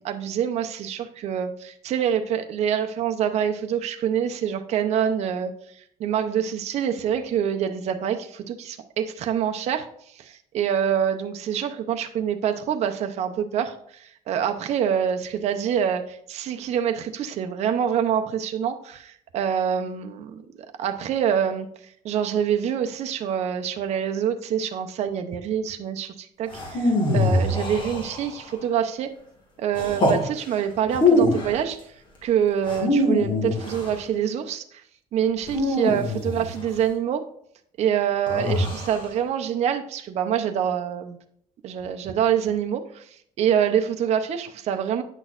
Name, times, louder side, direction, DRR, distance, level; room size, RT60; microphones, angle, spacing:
voice 1, 0.0-5.5 6.0-9.9 10.2-20.4 20.8-21.7 22.0-29.1 29.6-31.8 32.2-34.8 35.1-37.2 37.8-41.2 41.6-43.0 43.4-45.0, right 8 dB, 50° right, 6 dB, 0.6 m, -26 dB
sound 1, 26.5-28.5 29.7-30.2 30.9-31.6 32.6-34.0 35.5-36.7 38.3-39.0, left 2 dB, 35° left, 1.8 m, -23 dB
8.9 x 6.1 x 2.4 m, 0.67 s
cardioid pair, 145°, 14 cm